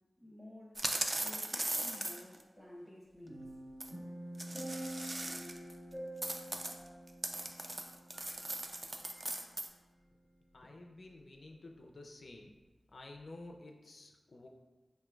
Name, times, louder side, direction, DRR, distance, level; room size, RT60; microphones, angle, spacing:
voice 1, 0.2-0.8 1.2-3.6, left 1 dB, ahead, -5 dB, 0.7 m, -52 dB
sound 1, 0.8-2.4 3.8-3.9 4.4-5.7 6.2-9.7, right 1 dB, 30° right, 0.3 m, -38 dB
sound 2, 3.3-8.7 9.0-9.2, right 1 dB, 80° right, 1.4 m, -46 dB
voice 2, 10.5-12.5 12.9-14.5, left 2 dB, 60° left, 1 dB, 0.3 m, -51 dB
4.3 x 3.0 x 2.3 m, 1.2 s
wide cardioid pair, 85°, 0 cm